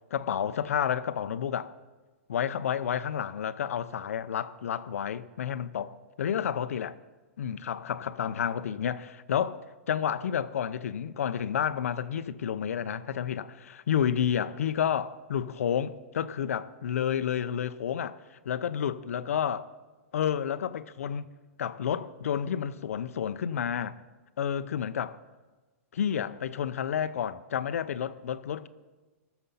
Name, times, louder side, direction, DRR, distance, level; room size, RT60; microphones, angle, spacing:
voice 1, 0.1-1.7 2.3-7.0 7.4-19.6 20.1-21.3 21.6-24.0 24.4-25.2 25.9-28.7, left 8 dB, 85° left, 0.6 m, -30 dB
18.5 x 7.0 x 5.6 m
hypercardioid pair, 170°, 8 cm